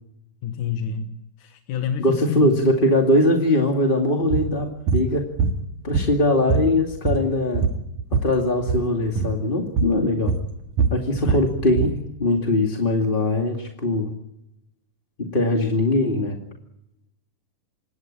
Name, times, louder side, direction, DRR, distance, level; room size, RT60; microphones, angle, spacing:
voice 1, 0.4-1.1 1.4-2.5 11.2-11.4, left 8 dB, 65° left, 6 dB, 2.6 m, -28 dB
voice 2, 2.0-5.3 5.8-7.6 8.1-10.3 10.9-14.1 15.2-16.4, left 1 dB, 20° left, 1 dB, 1.9 m, -21 dB
sound 1, 4.3-4.5 4.9-5.1 5.4-6.2 6.5-8.3 8.6-8.9 9.2-9.4 9.8-10.0 10.3-12.0, right 5 dB, 65° right, 3.3 m, -22 dB
26.5 x 21.0 x 8.8 m, 0.87 s
omnidirectional pair, 4.0 m